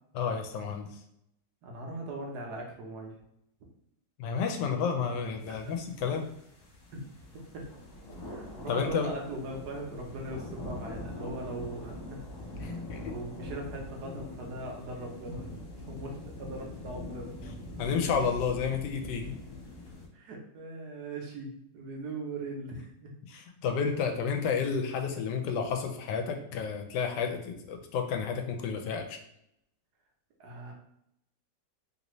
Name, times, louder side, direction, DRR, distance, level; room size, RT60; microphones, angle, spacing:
voice 1, 0.1-0.9 4.2-6.3 8.7-9.1 12.6-13.1 17.8-19.4 23.3-29.2, left 6 dB, 80° left, 4 dB, 1.2 m, -31 dB
voice 2, 1.6-3.2 5.5-5.6 6.9-7.0 7.5-7.6 8.2-12.3 13.1-17.4 20.1-23.1 30.4-30.7, right 2 dB, 70° right, 0 dB, 1.3 m, -40 dB
sound 1, 5.4-20.1, left 1 dB, 55° left, 1.3 m, -43 dB
3.2 x 2.6 x 3.0 m, 0.77 s
omnidirectional pair, 1.9 m